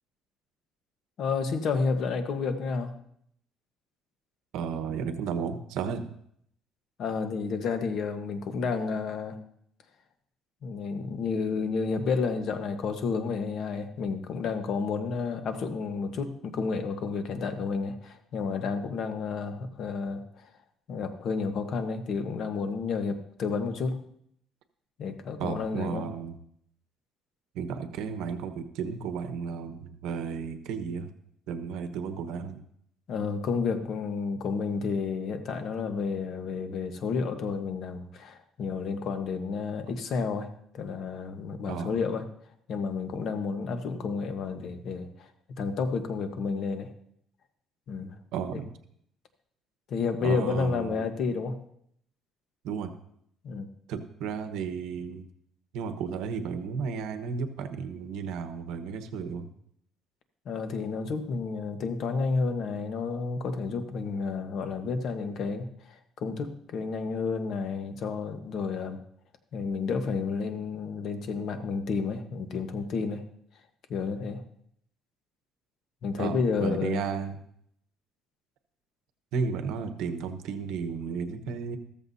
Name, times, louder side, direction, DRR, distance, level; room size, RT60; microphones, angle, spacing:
voice 1, 1.2-2.9 7.0-9.4 10.6-20.5 20.9-24.0 25.0-26.1 33.1-40.5 40.7-42.3 42.7-46.9 47.9-48.1 49.9-51.6 53.4-53.7 60.4-69.0 69.5-73.2 73.9-74.4 76.0-77.0, left 5 dB, 50° left, 7 dB, 1.2 m, -31 dB
voice 2, 4.5-6.1 25.4-26.3 27.5-31.1 31.5-32.6 41.7-42.0 48.3-48.7 50.2-51.0 52.6-52.9 53.9-55.2 55.7-59.5 76.2-77.4 79.3-81.8, right 6 dB, 80° right, 8 dB, 1.1 m, -33 dB
14.0 x 14.0 x 2.8 m, 0.69 s
cardioid pair, 145°, 0 cm